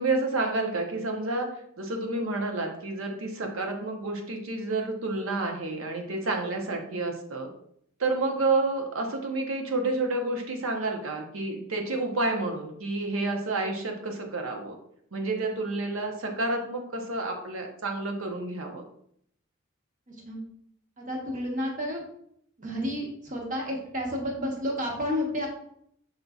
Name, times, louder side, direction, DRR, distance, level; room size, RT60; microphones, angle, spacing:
voice 1, 0.0-1.5 1.8-7.5 8.0-14.7 15.1-18.8, right 2 dB, 80° right, 3 dB, 0.8 m, -29 dB
voice 2, 20.1-20.4 21.0-22.0 22.6-25.5, left 1 dB, 40° right, -1 dB, 1.1 m, -31 dB
5.5 x 3.9 x 2.4 m, 0.69 s
head